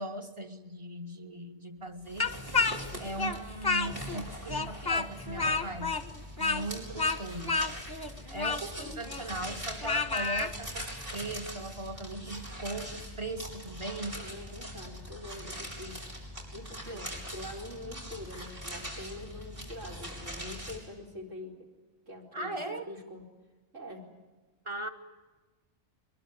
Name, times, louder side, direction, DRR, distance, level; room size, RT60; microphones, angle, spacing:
voice 1, 0.0-2.3 3.0-6.0 6.4-7.6 8.3-14.2 16.9-17.0 22.3-22.9 24.7-24.9, right 2 dB, 25° right, 6 dB, 1.9 m, -39 dB
sound 1, 2.0-20.8, equal, 45° right, 6.0 m, -42 dB
Speech, 2.2-4.2 4.5-10.5, left 4 dB, 20° left, 1.2 m, -30 dB
voice 2, 8.8-9.2 9.6-9.7 13.8-16.0 16.5-21.7 22.1-22.6 22.9-23.3 23.7-24.1, left 1 dB, 75° right, 0 dB, 4.8 m, -45 dB
23.0 x 22.0 x 9.1 m, 1.2 s
omnidirectional pair, 1.3 m